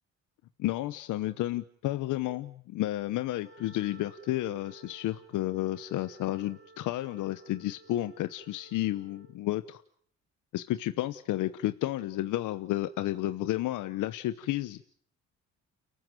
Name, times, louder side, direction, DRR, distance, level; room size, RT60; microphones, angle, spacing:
voice 1, 0.6-9.8 10.5-14.8, left 15 dB, 90° left, 12 dB, 1.0 m, -32 dB
Wind instrument woodwind instrument, 3.1-9.4, right 3 dB, 45° right, 5.4 m, -56 dB
30.0 x 14.5 x 9.1 m, 0.63 s
cardioid pair, 90°, 30 cm